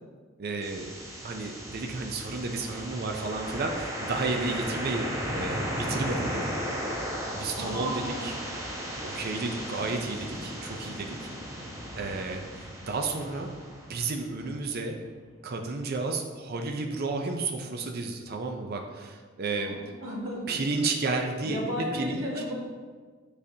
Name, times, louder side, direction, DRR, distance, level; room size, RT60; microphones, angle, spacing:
voice 1, 0.4-0.9 1.2-6.4 7.3-8.3 9.0-11.3 12.0-13.5 13.9-15.0 15.4-19.8 20.5-21.6 21.9-22.2, right 3 dB, 50° right, 3 dB, 0.5 m, -32 dB
sound 1, 0.6-14.5, equal, 15° right, 1.0 m, -35 dB
voice 2, 7.6-8.2 19.5-20.4 21.4-22.5, equal, 90° right, -3 dB, 1.7 m, -34 dB
8.7 x 5.0 x 2.8 m, 1.5 s
head